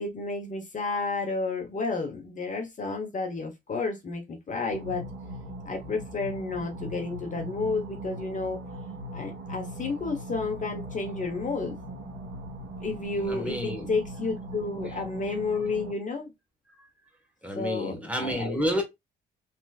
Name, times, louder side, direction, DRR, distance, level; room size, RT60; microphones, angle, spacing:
voice 1, 0.0-5.0 5.6-8.6 9.1-11.8 12.8-16.3 17.5-18.6, left 3 dB, 40° left, 1.0 m, -31 dB
sound 1, 4.7-15.9, right 1 dB, 70° right, 1.5 m, -40 dB
voice 2, 13.2-13.9 14.8-14.9 16.7-16.9 17.4-18.8, equal, 5° right, 1.3 m, -30 dB
3.3 x 3.0 x 2.3 m
cardioid pair, 90°, 20 cm